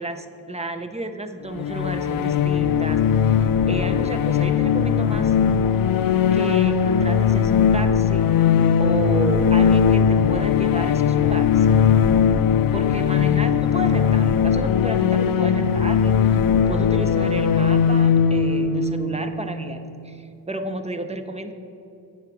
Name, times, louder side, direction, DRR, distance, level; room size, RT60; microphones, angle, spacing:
voice 1, 0.0-5.4 6.3-8.3 8.8-11.7 12.7-16.2 16.6-21.5, right 1 dB, 15° right, 7 dB, 0.6 m, -31 dB
sound 1, 1.5-20.2, left 7 dB, 50° left, 0.4 m, -19 dB
8.1 x 4.7 x 6.6 m, 2.8 s
cardioid pair, 80°, 47 cm